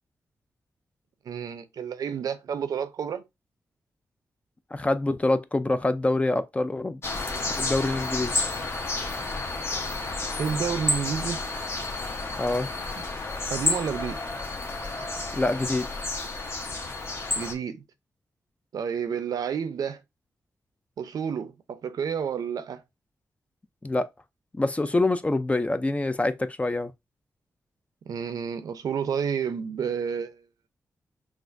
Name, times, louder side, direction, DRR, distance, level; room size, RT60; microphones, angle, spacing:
voice 1, 1.3-3.2 10.4-11.4 12.9-13.0 13.5-14.2 17.4-17.8 18.7-20.0 21.0-22.8 28.1-30.4, right 7 dB, 80° right, 0.6 m, -30 dB
voice 2, 4.7-7.0 7.6-8.4 12.4-12.7 15.3-15.9 23.8-24.1 24.5-26.9, left 2 dB, 20° left, 0.4 m, -25 dB
sound 1, 7.0-17.5, left 3 dB, 40° left, 1.0 m, -31 dB
5.8 x 2.5 x 2.6 m
cardioid pair, 90°, 6 cm